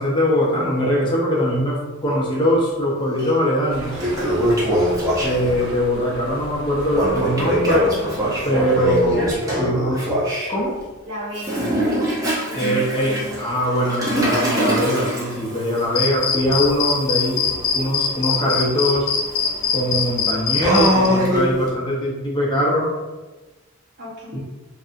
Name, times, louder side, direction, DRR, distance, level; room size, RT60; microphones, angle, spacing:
voice 1, 0.0-4.0 5.2-7.9 8.4-9.3 9.6-10.1 10.5-10.7 12.5-17.4 17.7-19.1 19.7-22.9 24.3-24.4, equal, 25° left, -5 dB, 0.5 m, -21 dB
Toilet flush, 3.2-3.3 3.7-5.7 6.9-10.5 11.3-21.7, equal, 15° right, 0.6 m, -23 dB
sound 1, 3.7-9.4, equal, 85° right, 0.7 m, -37 dB
voice 2, 9.2-9.7 11.0-11.7 12.4-12.7 24.0-24.4, equal, 55° right, -6 dB, 0.9 m, -34 dB
sound 2, 15.9-21.1, left 7 dB, 85° left, 0.4 m, -21 dB
2.7 x 2.4 x 2.4 m, 1.2 s
head